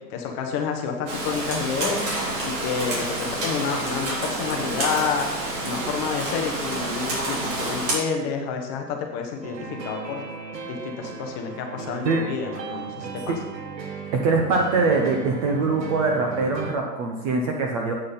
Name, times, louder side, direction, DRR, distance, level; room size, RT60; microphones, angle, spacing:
voice 1, 0.1-2.1 2.4-5.3 5.6-10.2 10.6-13.2, left 6 dB, 20° left, 3 dB, 1.0 m, -29 dB
Rain, 1.1-8.0, right 2 dB, 45° right, 3.4 m, -28 dB
sound 1, 9.4-16.7, right 5 dB, 80° right, 1.7 m, -36 dB
voice 2, 14.1-17.9, right 3 dB, 20° right, 1 dB, 0.7 m, -23 dB
8.7 x 6.3 x 5.6 m, 1.1 s
hypercardioid pair, 145°, 50 cm